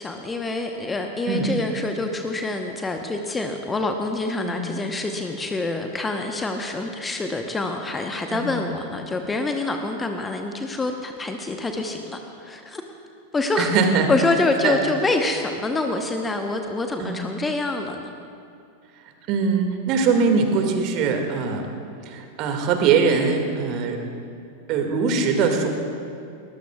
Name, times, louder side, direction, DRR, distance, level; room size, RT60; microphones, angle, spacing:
voice 1, 0.0-12.8 13.3-13.7 14.1-18.1, left 2 dB, 15° left, 5 dB, 1.0 m, -26 dB
voice 2, 13.6-14.1 14.6-14.8 17.0-17.2 19.3-21.7 22.1-24.0 24.7-25.7, right 5 dB, 40° right, 4 dB, 2.1 m, -22 dB
21.0 x 20.0 x 2.4 m, 2.5 s
figure-of-eight pair, 90°, 0 cm